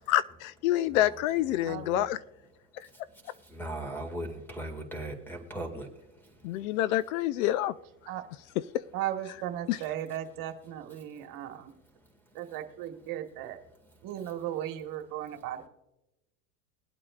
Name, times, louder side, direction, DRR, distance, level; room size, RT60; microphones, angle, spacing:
voice 1, 0.1-2.2 6.4-7.7 8.7-8.8 9.7-9.8, left 14 dB, 70° left, 18 dB, 0.5 m, -27 dB
voice 2, 0.9-2.1 2.8-6.8 11.2-11.3 12.0-12.4, right 1 dB, 5° left, 6 dB, 2.0 m, -41 dB
voice 3, 1.7-2.0 8.1-8.3 8.9-11.7 12.3-13.6 14.0-15.7, right 11 dB, 50° right, 5 dB, 1.5 m, -36 dB
21.5 x 8.6 x 2.4 m, 0.95 s
supercardioid pair, 110°, 42 cm